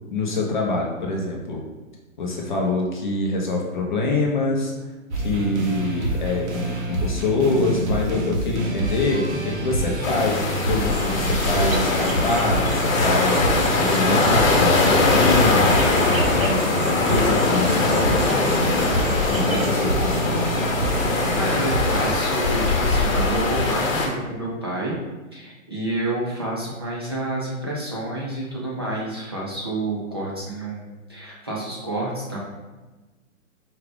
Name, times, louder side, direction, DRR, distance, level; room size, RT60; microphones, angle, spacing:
voice 1, 0.1-1.6 2.2-4.7 5.2-15.8 16.3-20.6, left 2 dB, 35° left, -1 dB, 0.6 m, -25 dB
sound 1, 5.1-22.2, right 1 dB, 55° right, 1.0 m, -27 dB
sound 2, 10.0-24.1, left 3 dB, 75° left, 1.1 m, -21 dB
sound 3, 10.9-19.7, right 3 dB, 80° right, 0.8 m, -36 dB
voice 2, 21.3-25.0 25.3-32.4, right 1 dB, 20° right, -6 dB, 0.3 m, -29 dB
4.8 x 2.4 x 3.4 m, 1.2 s
hypercardioid pair, 160°, 41 cm